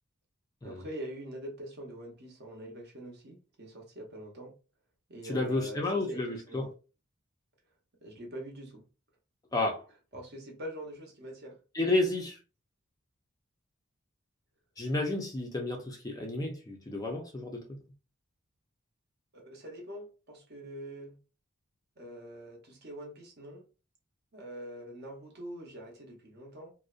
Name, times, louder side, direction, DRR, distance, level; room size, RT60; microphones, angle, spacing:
voice 1, 0.6-4.5 5.1-6.7 8.0-8.8 10.1-11.6 19.3-21.2 22.0-23.6 24.3-26.7, right 1 dB, 50° right, 0.8 m, -44 dB
voice 2, 5.2-6.6 9.5-9.8 11.7-12.4 14.8-17.6, left 2 dB, 15° left, 0.4 m, -31 dB
2.5 x 2.1 x 2.3 m
head